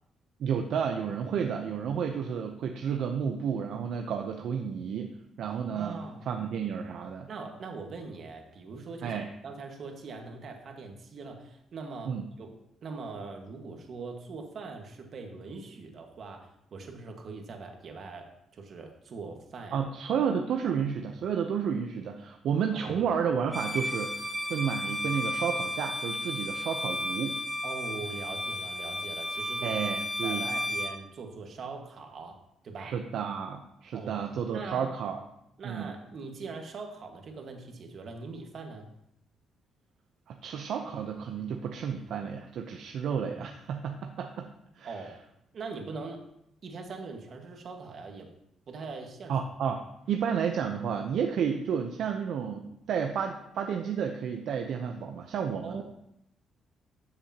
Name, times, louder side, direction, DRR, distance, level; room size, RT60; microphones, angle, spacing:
voice 1, 0.4-6.0 6.3-7.3 9.0-9.3 12.1-12.2 19.7-24.2 24.5-27.4 29.6-30.5 32.8-35.2 35.6-35.9 40.3-44.5 44.8-45.0 49.3-49.8 50.1-55.8, right 7 dB, 75° right, 3 dB, 0.7 m, -31 dB
voice 2, 5.7-6.3 7.3-19.9 22.8-23.1 27.6-29.8 30.2-32.4 32.6-32.9 33.9-34.2 34.5-34.9 35.6-38.9 44.8-45.2 45.5-46.2 46.6-48.3 48.7-49.4 55.6-55.8, right 4 dB, 55° right, 3 dB, 1.6 m, -42 dB
Bowed string instrument, 23.5-31.0, left 1 dB, 5° left, 1.5 m, -33 dB
13.0 x 6.9 x 2.9 m, 0.79 s
cardioid pair, 90°, 0 cm